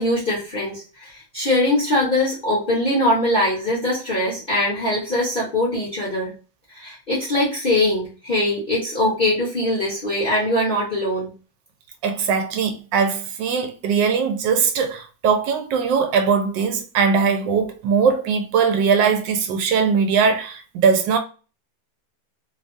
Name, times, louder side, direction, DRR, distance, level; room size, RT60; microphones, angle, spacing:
voice 1, 0.0-6.4 6.7-11.3, left 1 dB, 35° left, 0.9 m, -22 dB
voice 2, 12.0-21.2, right 6 dB, 85° right, 1.3 m, -20 dB
3.3 x 2.2 x 2.5 m
omnidirectional pair, 1.9 m